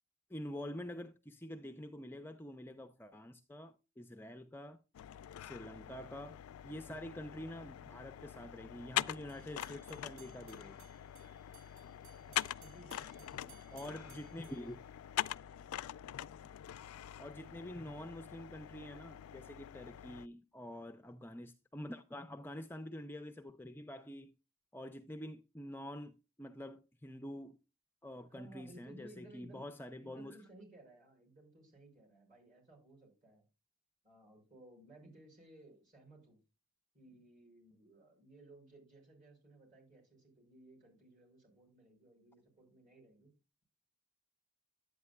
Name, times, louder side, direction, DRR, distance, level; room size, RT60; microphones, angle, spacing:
voice 1, 0.3-4.8 5.4-6.4 6.6-10.9 13.7-14.8 17.2-24.4 24.7-27.6 28.0-30.4, left 1 dB, 10° left, 0.4 m, -47 dB
sound 1, 4.9-20.3, left 12 dB, 85° left, 0.3 m, -44 dB
sound 2, 9.3-15.5, right 9 dB, 55° right, 0.8 m, -63 dB
voice 2, 12.2-14.0 28.3-29.7 30.0-33.5 34.0-36.4 36.9-43.3, right 1 dB, 35° right, 5.5 m, -59 dB
11.0 x 8.7 x 2.2 m
head